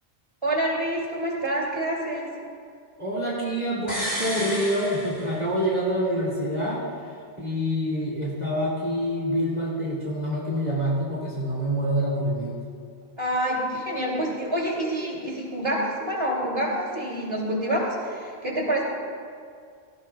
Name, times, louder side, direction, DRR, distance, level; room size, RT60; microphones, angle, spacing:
voice 1, 0.4-2.3 13.2-18.8, right 1 dB, 25° right, -3 dB, 2.6 m, -27 dB
voice 2, 3.0-6.9 7.4-12.6, equal, 40° right, -6 dB, 2.2 m, -26 dB
sound 1, 3.9-5.8 6.1-6.2, equal, 25° left, 2.8 m, -32 dB
17.5 x 16.5 x 2.2 m, 2.2 s
omnidirectional pair, 1.1 m